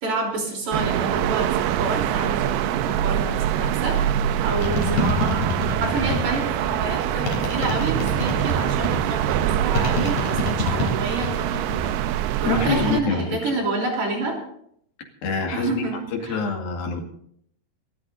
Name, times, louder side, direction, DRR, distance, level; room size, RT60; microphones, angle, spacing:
voice 1, 0.0-4.0 4.4-5.4 5.8-11.9 12.4-14.4 15.5-16.4, right 3 dB, 50° right, 0 dB, 4.7 m, -28 dB
sound 1, 0.7-13.0, right 10 dB, 85° right, 2.7 m, -24 dB
sound 2, 4.6-6.5 7.3-9.1 9.7-11.4 11.7-12.3, left 2 dB, 90° left, 5.6 m, -26 dB
voice 2, 12.5-13.5 15.2-17.0, left 4 dB, 70° left, 3 dB, 3.9 m, -26 dB
28.5 x 13.5 x 2.7 m, 0.68 s
omnidirectional pair, 4.5 m